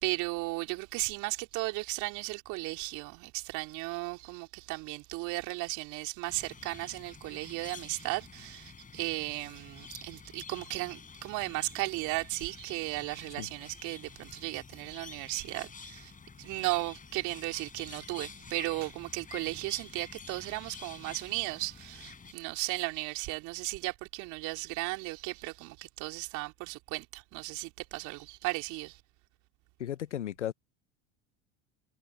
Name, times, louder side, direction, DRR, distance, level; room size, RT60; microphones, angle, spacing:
voice 1, 0.0-16.1 16.4-29.0, right 23 dB, 55° right, 3.2 m, -35 dB
sound 1, 6.3-22.3, left 5 dB, 25° left, 6.0 m, -49 dB
voice 2, 29.8-30.5, left 11 dB, 85° left, 1.2 m, -35 dB
hypercardioid pair, 80°, 35 cm